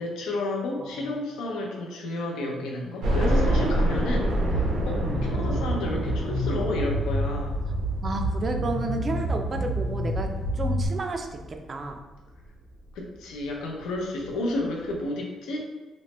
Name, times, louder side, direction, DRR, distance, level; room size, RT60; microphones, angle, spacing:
voice 1, 0.0-7.6 12.9-15.6, left 2 dB, 90° left, 0 dB, 0.5 m, -31 dB
voice 2, 0.8-1.1 2.5-2.6 5.0-5.2 8.0-10.3 10.6-12.0, right 2 dB, 40° right, 5 dB, 0.4 m, -32 dB
sound 1, 3.0-11.9 12.4-12.5 12.9-13.0 14.2-14.3 14.5-14.6, right 1 dB, 75° right, 0.7 m, -28 dB
sound 2, 4.3-10.9, right 1 dB, 55° left, 1.1 m, -29 dB
3.0 x 2.1 x 2.9 m, 1.2 s
cardioid pair, 90°, 0 cm